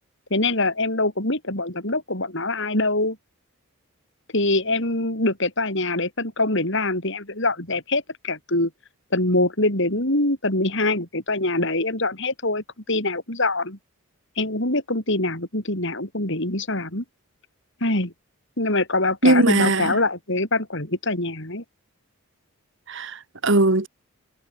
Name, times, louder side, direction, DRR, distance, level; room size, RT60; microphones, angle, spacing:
voice 1, 0.3-3.2 4.3-8.7 9.1-13.8 14.4-17.0 17.8-18.1 18.6-21.6, left 2 dB, 60° left, 6.1 m, -24 dB
voice 2, 19.2-20.0 22.9-23.9, right 2 dB, 60° right, 1.8 m, -19 dB
head